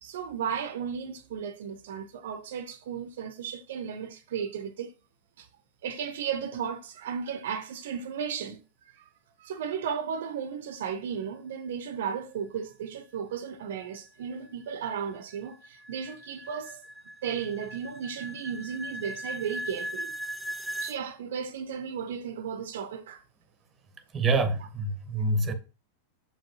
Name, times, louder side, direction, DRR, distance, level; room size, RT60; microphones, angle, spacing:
voice 1, 0.0-4.9 5.4-5.5 5.8-8.6 9.0-9.1 9.4-16.8 17.2-20.1 20.8-23.2, right 7 dB, 60° right, 0.6 m, -35 dB
sound 1, 13.8-21.0, equal, ahead, 0.4 m, -39 dB
voice 2, 24.1-25.5, right 2 dB, 20° right, 0.9 m, -26 dB
7.1 x 5.1 x 2.8 m
figure-of-eight pair, 90°, 0 cm